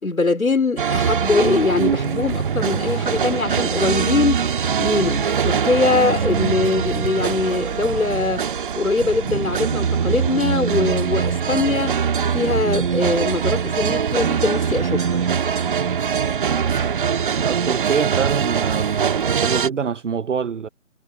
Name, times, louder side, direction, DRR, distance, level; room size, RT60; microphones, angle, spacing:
voice 1, 0.0-4.5 4.8-8.5 8.7-12.0 12.3-15.2, left 3 dB, 75° left, 4.9 m, -22 dB
sound 1, 0.8-19.7, right 7 dB, 35° right, 2.1 m, -22 dB
voice 2, 17.4-18.9 19.4-20.7, right 6 dB, 60° right, 0.9 m, -24 dB
figure-of-eight pair, 150°, 42 cm